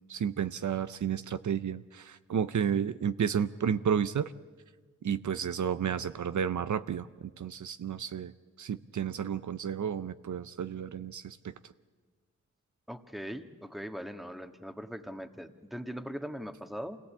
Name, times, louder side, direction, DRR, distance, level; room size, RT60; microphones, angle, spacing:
voice 1, 0.1-4.3 5.0-8.3 8.6-11.7, right 8 dB, 70° right, 12 dB, 0.7 m, -32 dB
voice 2, 12.9-17.0, equal, ahead, 7 dB, 1.6 m, -40 dB
26.0 x 18.0 x 8.6 m, 1.4 s
cardioid pair, 55°, 31 cm